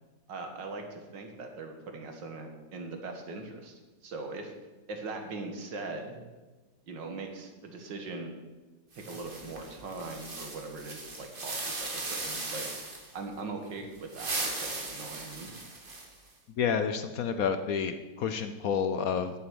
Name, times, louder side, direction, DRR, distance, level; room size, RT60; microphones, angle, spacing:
voice 1, 0.3-4.5 4.9-6.2 6.9-8.3 9.1-12.8 13.1-15.5, right 3 dB, 80° right, 4 dB, 2.2 m, -41 dB
sound 1, 8.9-13.1 14.0-16.3, right 2 dB, 30° right, 1.6 m, -38 dB
voice 2, 16.6-19.3, left 6 dB, 65° left, 9 dB, 0.9 m, -29 dB
9.8 x 7.9 x 6.9 m, 1.2 s
omnidirectional pair, 1.9 m